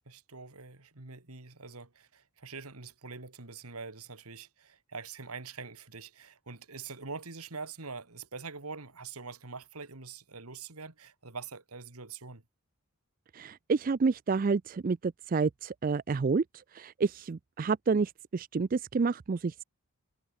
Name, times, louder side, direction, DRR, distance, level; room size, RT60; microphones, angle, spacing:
voice 1, 0.1-12.4, right 4 dB, 80° right, 2.3 m, -44 dB
voice 2, 13.3-16.4 16.7-19.6, right 4 dB, 40° right, 0.4 m, -29 dB
head